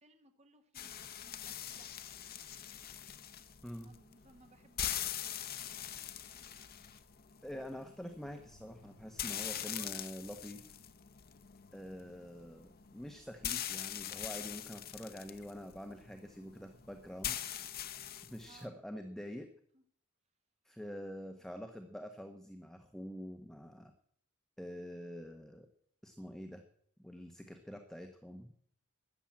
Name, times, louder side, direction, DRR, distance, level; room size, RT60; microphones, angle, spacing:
voice 1, 0.0-1.9 3.6-5.6 9.6-9.9 18.5-18.8 19.7-19.8, right 2 dB, 30° right, 6 dB, 1.2 m, -62 dB
sound 1, 0.7-18.6, left 10 dB, 45° left, 0.9 m, -43 dB
voice 2, 7.4-10.8 11.7-17.5 18.2-19.5 20.6-23.9 24.6-25.7 26.0-26.6 27.0-28.5, equal, ahead, 5 dB, 1.1 m, -46 dB
13.5 x 10.0 x 8.7 m, 0.64 s
head